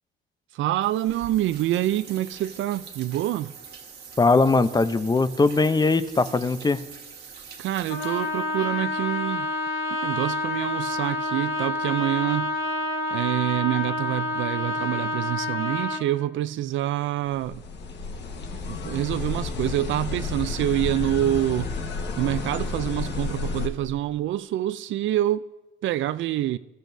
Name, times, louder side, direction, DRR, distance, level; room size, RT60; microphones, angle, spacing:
voice 1, 0.6-3.5 7.6-9.5 9.9-12.5 13.1-17.6 18.7-21.7 22.2-25.4 25.8-26.6, right 13 dB, 75° right, 0.4 m, -26 dB
sound 1, 0.8-8.7, right 6 dB, 55° right, 1.6 m, -44 dB
voice 2, 4.2-6.8, left 3 dB, 20° left, 0.6 m, -20 dB
Trumpet, 7.9-16.1, left 2 dB, 90° left, 1.6 m, -28 dB
sound 2, 17.3-23.7, left 4 dB, 60° left, 1.4 m, -31 dB
22.0 x 13.0 x 2.7 m
cardioid pair, 90°, 20 cm